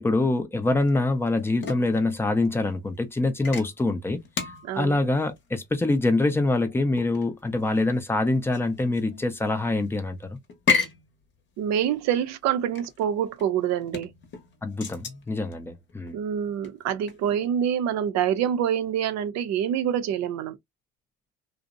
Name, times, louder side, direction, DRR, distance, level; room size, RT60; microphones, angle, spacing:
voice 1, 0.0-4.2 4.7-10.4 14.6-16.2, left 2 dB, 10° left, 0.4 m, -25 dB
sound 1, 0.8-17.3, left 5 dB, 35° left, 0.8 m, -34 dB
voice 2, 4.6-5.1 11.6-14.1 16.1-20.6, right 9 dB, 60° right, 0.5 m, -26 dB
2.5 x 2.0 x 2.4 m
cardioid pair, 120°, 32 cm